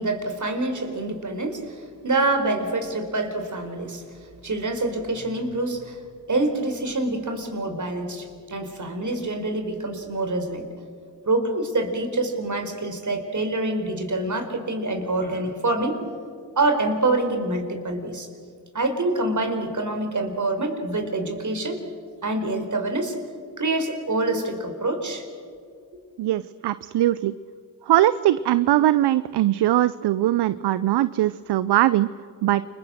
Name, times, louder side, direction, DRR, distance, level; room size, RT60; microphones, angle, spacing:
voice 1, 0.0-4.0 4.4-6.0 6.3-10.7 11.2-16.0 16.6-18.3 18.7-21.8 22.2-23.2 23.6-25.2, right 2 dB, 40° right, 6 dB, 4.7 m, -26 dB
voice 2, 26.2-27.3 27.9-32.1 32.4-32.6, right 14 dB, 60° right, 16 dB, 0.7 m, -21 dB
29.0 x 22.0 x 6.4 m, 2.3 s
hypercardioid pair, 45°, 44 cm